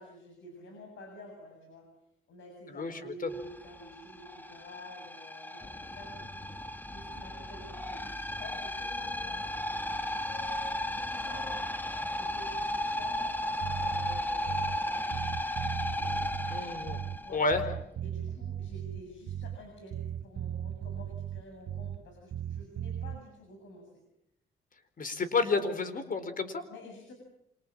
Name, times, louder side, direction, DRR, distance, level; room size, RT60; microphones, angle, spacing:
voice 1, 0.0-1.9 2.3-6.3 6.9-8.1 8.4-9.9 10.2-15.3 15.9-16.0 17.2-17.4 18.0-23.9 26.7-27.1, equal, 70° left, 3 dB, 7.3 m, -49 dB
voice 2, 2.7-3.1 16.5-17.0 17.3-17.6 25.0-26.6, left 3 dB, 45° left, 12 dB, 4.3 m, -30 dB
sound 1, 3.3-17.9, left 1 dB, 10° left, 1.7 m, -35 dB
Bass guitar, 13.6-14.9 15.1-17.3 17.5-19.7 19.9-22.1 22.3-23.2, right 10 dB, 55° right, 1.3 m, -37 dB
28.0 x 26.0 x 7.5 m, 0.80 s
cardioid pair, 90°, 20 cm